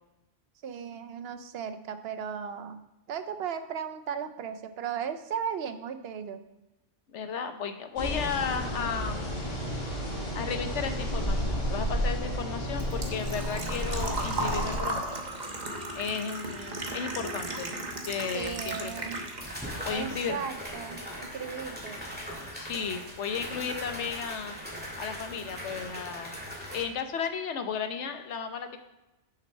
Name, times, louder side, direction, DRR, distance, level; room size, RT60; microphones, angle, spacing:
voice 1, 0.6-2.8 3.1-6.4 18.3-19.2 19.9-22.1, right 7 dB, 60° right, 9 dB, 0.8 m, -36 dB
voice 2, 7.1-9.5 10.3-15.2 16.0-17.7 18.1-19.1 19.8-20.4 22.5-24.6 25.0-26.4 26.7-28.8, left 6 dB, 70° left, 8 dB, 1.1 m, -34 dB
sound 1, 8.0-14.8, equal, 40° left, 1.8 m, -32 dB
Engine / Trickle dribble / Fill (with liquid), 11.8-19.8 20.1-21.1 21.4-21.5 23.4-23.5 23.7-24.0 24.4-24.5 24.7-24.8, right 2 dB, 40° right, 1.1 m, -36 dB
sound 2, 18.4-18.5 19.4-26.8, equal, 10° right, 2.0 m, -40 dB
6.6 x 6.4 x 5.3 m, 0.98 s
omnidirectional pair, 1.3 m